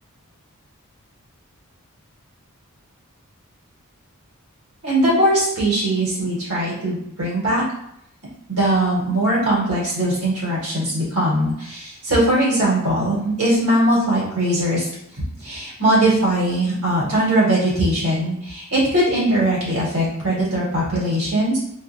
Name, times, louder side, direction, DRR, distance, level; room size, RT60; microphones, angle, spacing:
voice 1, 4.8-7.6 8.5-14.9 15.4-21.6, right 1 dB, 80° right, -6 dB, 1.4 m, -20 dB
2.8 x 2.3 x 2.4 m, 0.78 s
head